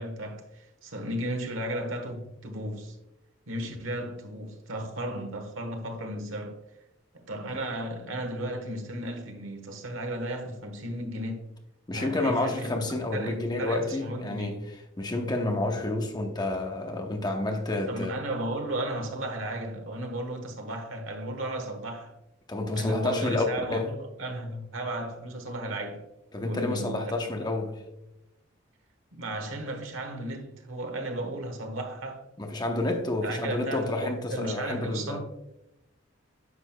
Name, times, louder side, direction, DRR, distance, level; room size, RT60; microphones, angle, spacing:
voice 1, 0.0-3.0 3.5-6.6 7.1-11.5 11.9-12.7 13.1-14.6 17.9-22.1 22.7-26.0 26.4-27.2 29.1-32.2 32.8-32.9 33.2-35.2, right 1 dB, 85° right, 1.3 m, -34 dB
voice 2, 11.9-14.6 15.0-18.2 22.5-23.4 23.7-23.9 26.3-27.8 32.4-35.2, left 2 dB, 20° left, 0.8 m, -29 dB
9.5 x 6.0 x 2.2 m
head